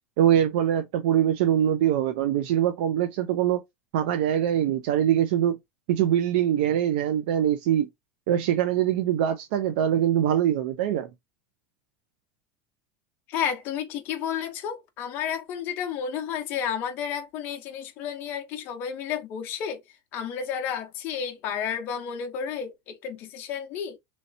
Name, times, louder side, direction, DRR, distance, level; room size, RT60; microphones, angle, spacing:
voice 1, 0.2-3.6 3.9-5.6 5.9-7.9 8.3-11.1, right 10 dB, 70° right, 0.5 m, -23 dB
voice 2, 13.3-19.8 20.1-24.0, left 8 dB, 40° left, 0.7 m, -31 dB
3.1 x 2.8 x 2.6 m
cardioid pair, 170°, 6 cm